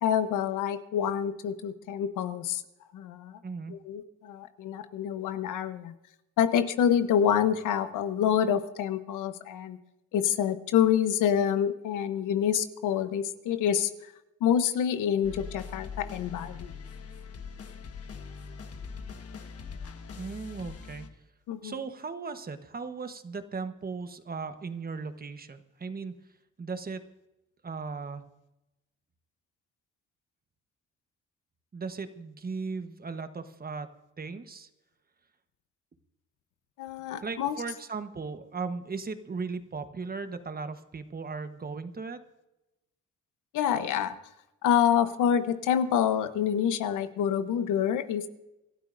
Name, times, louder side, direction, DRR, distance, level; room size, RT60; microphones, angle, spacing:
voice 1, 0.0-2.6 2.9-3.4 3.7-5.9 6.4-9.8 10.1-14.1 14.4-16.7 21.5-21.7 36.8-37.5 43.5-44.1 44.6-48.3, left 9 dB, 85° left, 11 dB, 1.0 m, -27 dB
voice 2, 3.4-3.7 20.2-21.1 21.6-26.1 26.6-27.0 27.6-28.2 31.7-33.9 34.2-34.7 37.2-42.2, right 4 dB, 30° right, 9 dB, 1.2 m, -37 dB
sound 1, 15.2-21.1, left 5 dB, 50° left, 1.4 m, -42 dB
26.5 x 12.5 x 2.6 m, 0.95 s
cardioid pair, 90°, 30 cm